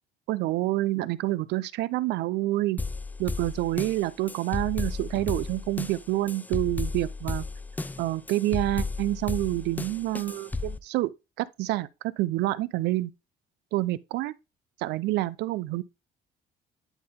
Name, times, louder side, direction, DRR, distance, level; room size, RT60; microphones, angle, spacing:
voice 1, 0.3-2.8 3.2-7.5 8.0-11.1 11.4-11.9 12.2-13.1 13.7-14.3 14.8-15.8, right 17 dB, 85° right, 0.6 m, -28 dB
sound 1, 2.8-10.8, left 3 dB, 10° left, 0.4 m, -34 dB
10.0 x 3.8 x 3.6 m
cardioid pair, 110°, 17 cm